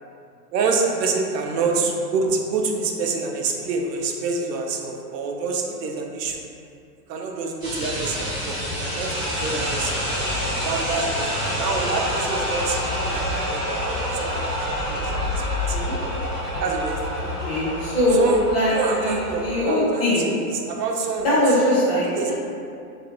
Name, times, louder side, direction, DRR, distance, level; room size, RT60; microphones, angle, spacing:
voice 1, 0.5-6.4 7.1-10.0 10.6-14.5 14.8-15.3 15.7-15.8 16.6-17.3 18.1-21.4 22.1-22.3, right 4 dB, 85° right, 1 dB, 0.6 m, -27 dB
sound 1, 7.6-19.6, equal, 15° right, 0.4 m, -27 dB
voice 2, 17.4-18.7 19.0-20.3 21.2-22.3, equal, 40° left, -9 dB, 0.9 m, -21 dB
2.4 x 2.4 x 2.8 m, 2.4 s
supercardioid pair, 175°, 48 cm